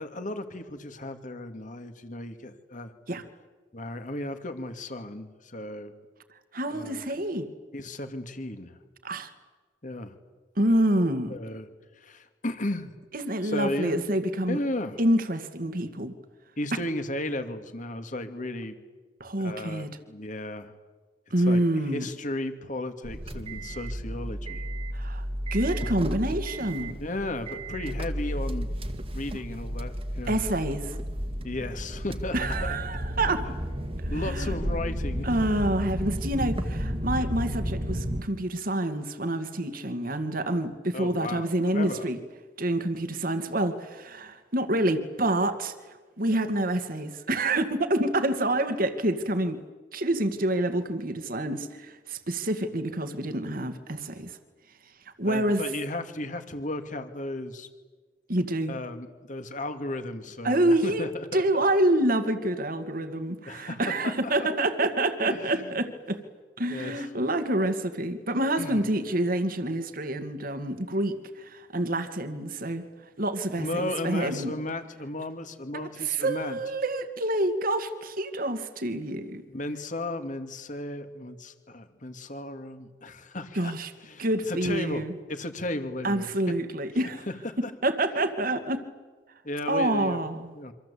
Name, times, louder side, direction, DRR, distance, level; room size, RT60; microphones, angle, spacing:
voice 1, 0.0-2.9 3.7-5.9 6.7-7.0 7.7-8.8 9.8-10.2 11.3-11.7 12.0-12.9 13.4-14.0 14.5-15.0 16.6-18.7 19.4-20.7 21.4-21.6 21.9-24.6 27.0-28.7 29.1-30.4 31.4-32.4 34.1-35.3 40.9-42.1 55.3-57.7 58.7-61.6 63.5-64.7 65.2-65.7 66.7-67.1 68.6-68.8 73.6-76.6 79.5-83.7 84.0-86.4 87.3-87.7 89.4-90.2 90.5-90.7, left 1 dB, 45° left, 8 dB, 2.4 m, -35 dB
voice 2, 6.5-7.5 9.0-9.3 10.6-11.3 13.1-14.6 15.0-16.1 19.2-20.0 21.3-22.1 24.9-25.2 25.5-26.9 30.3-31.0 32.3-33.5 34.0-34.5 35.2-42.2 42.6-45.7 46.2-49.6 49.9-54.4 55.2-55.6 58.3-58.8 60.4-66.2 66.6-72.8 73.2-74.5 75.7-79.4 83.5-83.9 84.2-85.1 86.0-87.2 87.8-88.8 89.7-90.5, right 1 dB, 50° right, 8 dB, 2.2 m, -27 dB
sound 1, 23.0-38.2, equal, 35° right, 2.0 m, -32 dB
27.5 x 25.5 x 8.5 m, 1.4 s
head